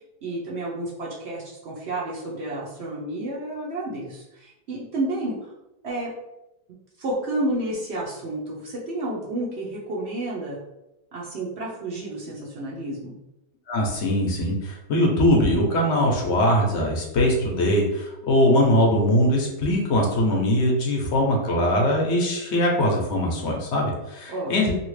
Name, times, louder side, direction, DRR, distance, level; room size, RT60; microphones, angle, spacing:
voice 1, 0.2-5.5 5.8-6.1 7.0-10.6 11.1-13.2 24.3-24.5, right 1 dB, 60° right, -4 dB, 0.6 m, -30 dB
voice 2, 13.7-24.7, left 1 dB, 60° left, 0 dB, 0.7 m, -21 dB
2.8 x 2.7 x 3.1 m, 0.91 s
omnidirectional pair, 1.9 m